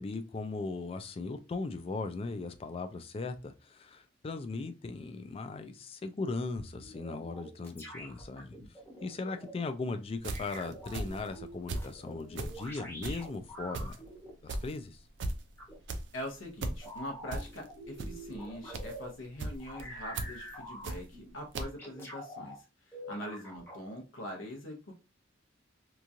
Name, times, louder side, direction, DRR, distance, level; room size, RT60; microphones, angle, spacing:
voice 1, 0.0-8.5 9.0-14.0 14.4-15.0, left 3 dB, 30° left, 0.3 m, -38 dB
sound 1, 6.6-9.5 10.3-14.3 15.6-15.8 16.8-19.1 19.6-21.3 21.8-22.6 22.9-23.8, equal, 10° left, 0.9 m, -46 dB
sound 2, 10.2-11.9 12.3-21.3 21.5-21.6, right 2 dB, 60° right, 0.4 m, -38 dB
voice 2, 16.1-24.9, equal, 80° left, 0.8 m, -43 dB
3.0 x 2.3 x 2.6 m
head